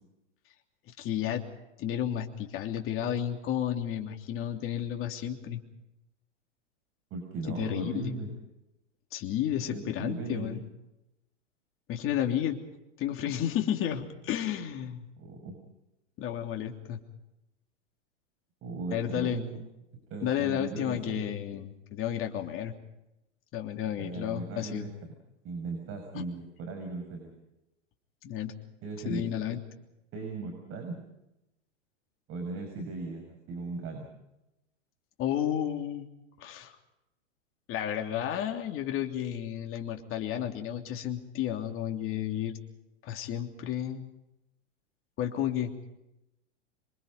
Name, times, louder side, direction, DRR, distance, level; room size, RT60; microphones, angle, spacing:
voice 1, 1.0-1.4 1.8-5.6 7.5-8.2 9.1-10.6 11.9-12.6 13.0-15.1 16.2-17.0 18.9-19.4 20.2-22.7 23.5-24.9 26.1-26.2 28.2-28.5 29.0-29.6 35.2-36.1 36.4-36.7 37.7-42.6 43.0-44.1 45.2-45.7, left 10 dB, 35° left, 4 dB, 3.2 m, -32 dB
voice 2, 7.1-8.3 9.7-10.5 15.2-15.6 18.6-19.6 20.1-21.2 24.0-24.9 25.4-27.3 28.8-29.2 30.1-31.0 32.3-34.1, right 3 dB, 35° right, 4 dB, 6.2 m, -37 dB
27.0 x 24.0 x 5.3 m, 0.92 s
hypercardioid pair, 125°, 38 cm